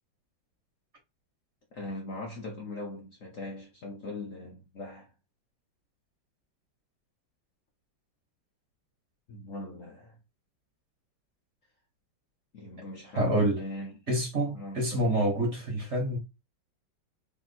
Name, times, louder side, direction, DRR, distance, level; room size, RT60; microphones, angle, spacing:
voice 1, 1.7-5.1 9.3-10.1 12.5-14.0 14.5-15.1, left 2 dB, 55° left, 1.0 m, -40 dB
voice 2, 13.2-13.6 14.1-16.2, right 1 dB, 40° right, 1.6 m, -27 dB
3.5 x 3.0 x 4.1 m
omnidirectional pair, 2.1 m